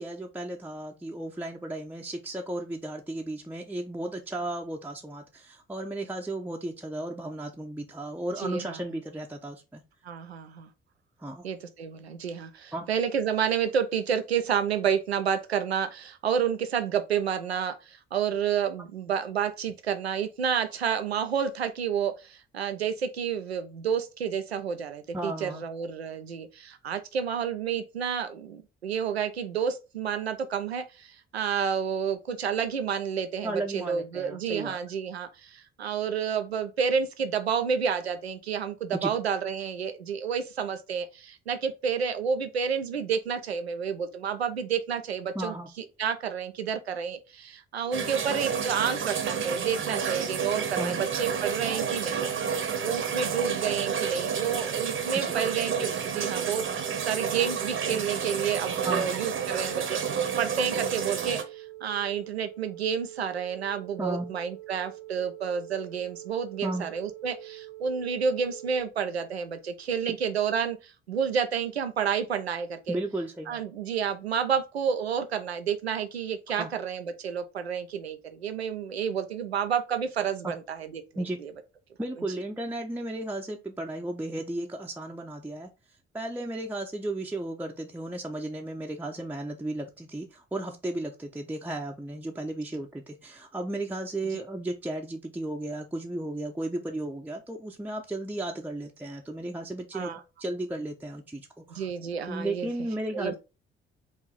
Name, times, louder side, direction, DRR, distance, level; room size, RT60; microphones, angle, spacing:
voice 1, 0.0-9.8 11.2-11.4 12.7-12.9 25.1-25.6 33.4-34.8 38.9-39.1 45.3-45.7 50.8-51.0 55.2-55.3 58.8-59.1 64.0-64.3 66.6-66.9 70.0-70.1 72.9-73.6 76.6-76.7 80.4-80.6 81.2-81.4 82.0-85.7 86.1-101.9 102.3-103.3, right 1 dB, 5° right, 0.6 m, -34 dB
voice 2, 8.4-8.8 10.0-10.7 11.4-52.3 52.8-56.6 57.0-73.0 73.5-81.0 81.4-81.5 99.9-100.2 101.7-102.7 103.1-103.3, right 7 dB, 90° right, 0.5 m, -30 dB
sound 1, 47.9-61.4, right 7 dB, 40° right, 0.9 m, -30 dB
sound 2, 51.9-68.8, right 18 dB, 35° left, 1.7 m, -46 dB
4.7 x 2.7 x 3.8 m
figure-of-eight pair, 45°, 31 cm